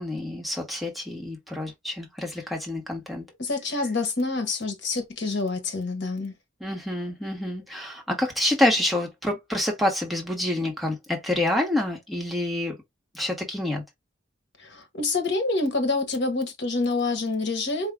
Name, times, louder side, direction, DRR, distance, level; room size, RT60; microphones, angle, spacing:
voice 1, 0.0-3.2 6.6-12.8 13.1-13.8, left 1 dB, ahead, 1.0 m, -27 dB
voice 2, 3.4-6.3 14.6-17.9, left 3 dB, 60° left, 1.1 m, -27 dB
4.6 x 2.1 x 3.5 m
head